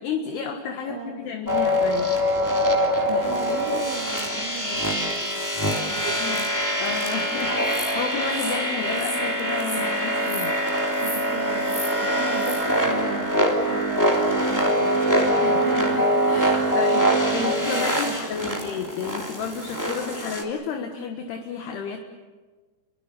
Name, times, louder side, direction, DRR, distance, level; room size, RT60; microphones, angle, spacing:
voice 1, 0.0-2.1 6.2-6.5 6.8-10.6 15.4-22.0, left 6 dB, 70° left, 4 dB, 3.3 m, -32 dB
voice 2, 0.8-1.2 3.1-6.3 11.0-15.0 17.4-18.5, right 7 dB, 85° right, -2 dB, 4.8 m, -37 dB
sound 1, 1.5-20.4, equal, 5° left, 1.8 m, -23 dB
29.5 x 23.5 x 6.8 m, 1.3 s
omnidirectional pair, 5.2 m